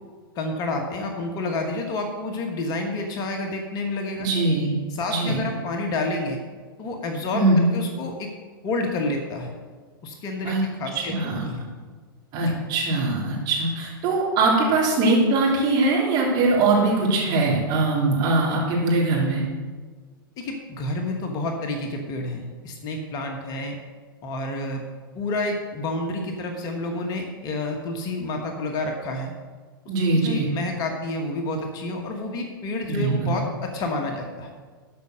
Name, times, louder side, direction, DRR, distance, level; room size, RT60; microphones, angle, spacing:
voice 1, 0.3-4.3 4.9-6.4 6.8-8.3 8.6-9.5 10.0-10.5 10.8-11.1 11.4-11.6 12.4-12.5 20.4-23.8 24.2-24.8 25.1-29.3 30.1-34.5, left 2 dB, 30° left, 3 dB, 1.3 m, -29 dB
voice 2, 4.2-4.8 5.1-5.5 7.3-7.7 10.4-10.6 11.0-11.5 12.3-19.4 29.9-30.5 32.9-33.4, right 2 dB, 35° right, -4 dB, 3.5 m, -21 dB
13.0 x 5.5 x 6.4 m, 1.5 s
figure-of-eight pair, 100°, 12 cm